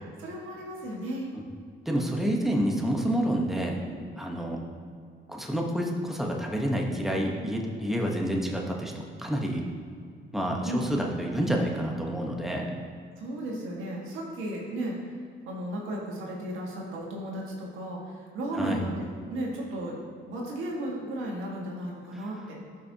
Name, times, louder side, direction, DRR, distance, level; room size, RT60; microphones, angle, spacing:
voice 1, 0.2-1.3 3.8-4.0 7.8-7.9 10.6-11.0 13.2-15.1 15.4-20.0 20.3-22.6, right 1 dB, 90° right, -2 dB, 1.7 m, -35 dB
voice 2, 1.9-3.8 4.2-4.6 5.3-8.9 9.2-9.6 10.3-12.7 18.6-18.8, equal, ahead, 0 dB, 1.1 m, -28 dB
13.0 x 5.5 x 2.9 m, 2.2 s
cardioid pair, 90°, 20 cm